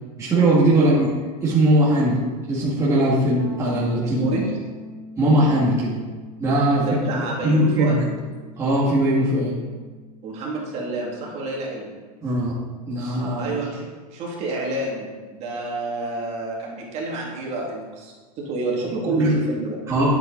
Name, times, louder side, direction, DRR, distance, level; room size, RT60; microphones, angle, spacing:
voice 1, 0.2-1.1 1.4-4.3 5.2-5.9 6.4-6.8 7.1-8.0 8.6-9.5 12.2-12.5 12.9-13.6 19.2-19.4 19.9-20.2, right 1 dB, 15° right, -7 dB, 1.8 m, -20 dB
sound 1, 3.4-13.1, equal, 90° right, 2.6 m, -43 dB
voice 2, 4.0-4.5 6.8-8.0 10.2-12.0 13.4-19.8, right 2 dB, 30° right, -2 dB, 2.3 m, -29 dB
11.0 x 7.7 x 3.9 m, 1.4 s
supercardioid pair, 155°, 21 cm